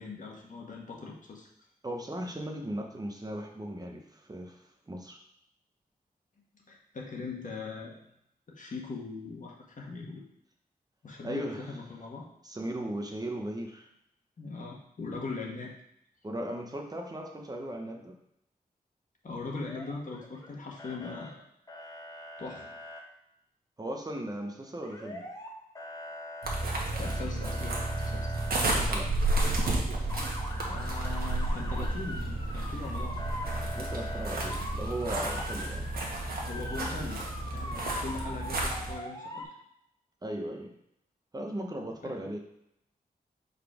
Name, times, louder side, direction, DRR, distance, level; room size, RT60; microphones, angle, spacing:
voice 1, 0.0-1.5 6.7-8.0 8.5-10.3 11.0-12.3 14.4-15.7 19.2-21.4 22.4-22.7 27.0-28.4 30.7-33.2 36.4-37.2 37.5-39.5 42.0-42.2, left 4 dB, 55° left, -2 dB, 1.4 m, -40 dB
voice 2, 1.8-4.6 4.9-5.2 11.2-11.6 12.4-13.9 16.2-18.2 23.8-25.2 28.7-29.2 33.7-35.9 40.2-40.8 41.3-42.4, right 1 dB, 25° right, 2 dB, 0.9 m, -37 dB
Motor vehicle (road) / Siren, 19.5-20.5 20.8-21.3 21.7-23.0 24.8-25.5 25.8-28.7 29.2-29.7 30.1-39.4, left 1 dB, 25° left, 1.2 m, -42 dB
sound 1, 26.4-38.9, right 2 dB, 80° right, 1.3 m, -31 dB
5.3 x 4.1 x 4.9 m, 0.78 s
wide cardioid pair, 95°, 15 cm